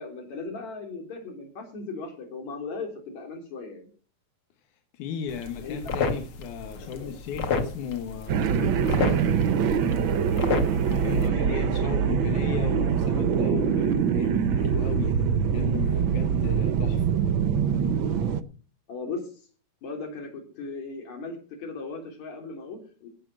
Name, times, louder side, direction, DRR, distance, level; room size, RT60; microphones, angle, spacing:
voice 1, 0.0-3.9 5.6-6.0 6.8-7.1 11.1-11.9 18.9-19.5 19.8-23.1, left 3 dB, 70° left, 5.0 m, -38 dB
voice 2, 4.7-9.5 10.9-17.2, left 8 dB, 90° left, 2.8 m, -36 dB
sound 1, 5.3-11.3, left 4 dB, 50° left, 2.4 m, -32 dB
sound 2, 8.3-18.4, right 7 dB, 70° right, 1.1 m, -24 dB
16.5 x 7.8 x 6.2 m
omnidirectional pair, 3.4 m